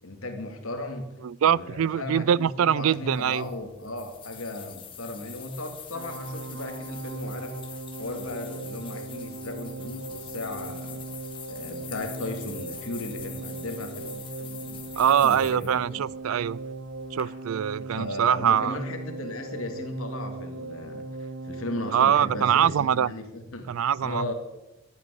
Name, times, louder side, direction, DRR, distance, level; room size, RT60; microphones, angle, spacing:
voice 1, 0.0-1.1 1.4-7.6 8.0-11.0 11.5-16.0 17.9-23.7 24.0-24.3, left 2 dB, 80° left, 2.3 m, -36 dB
voice 2, 1.2-3.4 15.0-16.6 17.1-18.8 21.9-23.1 23.7-24.2, right 9 dB, 75° right, 0.4 m, -23 dB
sound 1, 2.9-17.2, left 7 dB, 25° left, 1.8 m, -45 dB
sound 2, 5.9-22.7, right 3 dB, 55° right, 0.8 m, -39 dB
13.0 x 8.5 x 8.0 m
head